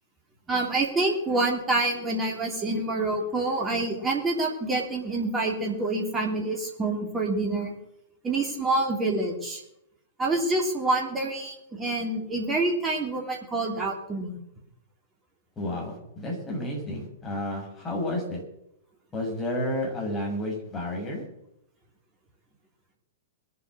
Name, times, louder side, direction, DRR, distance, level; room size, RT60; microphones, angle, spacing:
voice 1, 0.5-7.7 8.2-9.6 10.2-14.4, right 2 dB, 15° right, 0 dB, 3.4 m, -27 dB
voice 2, 15.6-18.4 19.1-21.3, left 1 dB, 15° left, -2 dB, 7.0 m, -31 dB
21.0 x 8.5 x 6.4 m, 0.81 s
figure-of-eight pair, 105°, 0 cm